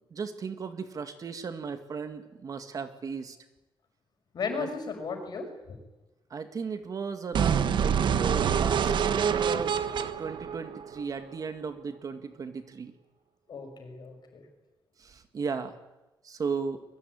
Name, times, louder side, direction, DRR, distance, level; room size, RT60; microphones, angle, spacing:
voice 1, 0.1-3.4 4.6-4.7 6.3-9.8 10.2-12.9 15.0-15.8 16.2-16.8, right 5 dB, 45° right, 8 dB, 1.9 m, -35 dB
voice 2, 4.3-5.8 13.5-14.4, left 5 dB, 55° left, 4 dB, 6.3 m, -35 dB
sound 1, 7.3-11.3, right 7 dB, 65° right, 1.3 m, -26 dB
23.0 x 20.5 x 9.8 m, 1.0 s
wide cardioid pair, 150°, 9 cm